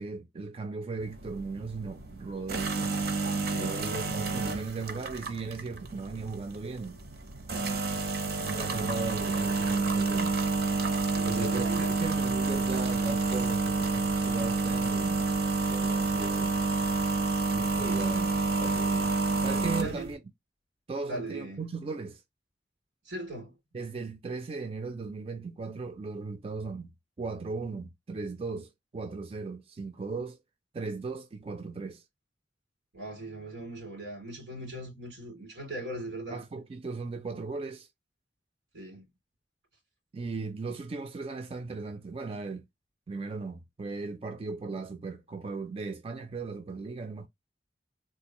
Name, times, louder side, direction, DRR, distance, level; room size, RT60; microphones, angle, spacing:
voice 1, 0.0-3.0 3.6-7.0 8.4-10.4 11.2-15.2 15.7-16.5 17.5-18.3 18.6-19.2 19.4-20.2 20.9-22.2 23.7-26.9 27.2-30.4 30.7-32.0 36.3-37.9 40.1-42.6 43.1-47.3, right 4 dB, 35° right, 0.4 m, -37 dB
sound 1, 1.0-20.1, right 3 dB, 60° right, 0.8 m, -29 dB
voice 2, 3.5-4.2 7.5-7.9 11.1-11.9 17.8-18.4 19.8-20.1 21.1-21.6 23.0-23.5 32.9-36.4 38.7-39.0, right 1 dB, 90° right, 2.7 m, -39 dB
3.7 x 2.4 x 2.9 m
head